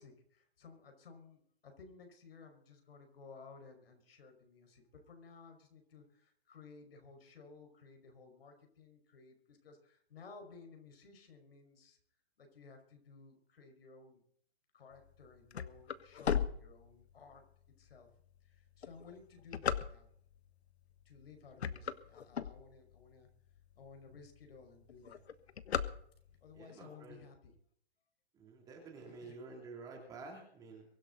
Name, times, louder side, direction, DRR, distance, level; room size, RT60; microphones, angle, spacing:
voice 1, 0.0-12.0 12.4-14.2 14.7-17.4 17.8-18.1 18.4-20.1 21.1-23.3 23.7-25.2 26.4-27.5 29.2-29.4, left 4 dB, 65° left, 5 dB, 5.5 m, -56 dB
sound 1, 15.1-17.3 17.9-18.0 18.7-20.4 21.0-21.2 21.5-23.1 23.6-23.7 23.9-24.0 24.3-24.6 24.9-26.5, left 7 dB, 85° left, 1.4 m, -36 dB
voice 2, 26.5-27.2 28.3-30.8, right 3 dB, 10° right, 0 dB, 3.0 m, -50 dB
23.5 x 11.5 x 4.1 m, 0.65 s
hypercardioid pair, 170°, 32 cm